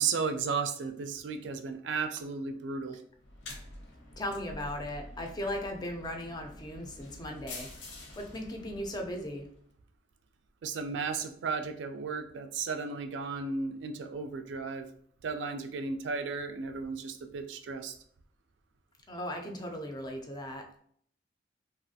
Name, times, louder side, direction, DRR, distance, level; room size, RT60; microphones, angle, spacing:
voice 1, 0.0-3.0 10.6-14.9 15.2-17.9, right 5 dB, 70° right, 7 dB, 0.3 m, -34 dB
sound 1, 3.2-9.6, left 2 dB, 85° left, 0.7 m, -47 dB
voice 2, 4.2-9.5 19.1-20.8, left 1 dB, 20° left, 3 dB, 0.4 m, -38 dB
3.1 x 2.4 x 2.6 m, 0.62 s
head